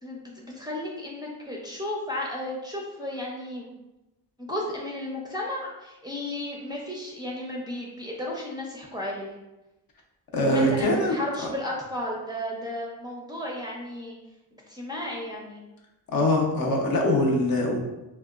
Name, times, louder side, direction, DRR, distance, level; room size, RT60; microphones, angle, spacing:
voice 1, 0.0-3.7 4.4-9.3 10.5-14.2 14.7-15.6, left 1 dB, 10° right, -3 dB, 0.4 m, -34 dB
voice 2, 10.3-11.5 16.1-17.8, left 1 dB, 55° left, 0 dB, 0.7 m, -23 dB
2.8 x 2.1 x 2.3 m, 0.98 s
cardioid pair, 75°, 42 cm